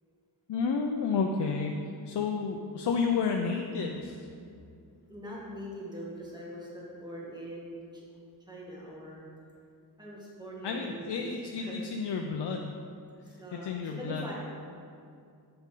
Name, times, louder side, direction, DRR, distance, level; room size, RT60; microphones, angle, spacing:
voice 1, 0.5-1.8 2.1-4.3 10.6-12.8 13.5-14.2, left 5 dB, 80° left, 2 dB, 0.6 m, -31 dB
voice 2, 5.1-8.1 8.4-9.2 10.0-11.8 13.2-14.4, equal, 10° right, -5 dB, 1.7 m, -42 dB
7.9 x 7.2 x 3.8 m, 2.4 s
wide cardioid pair, 130°, 40 cm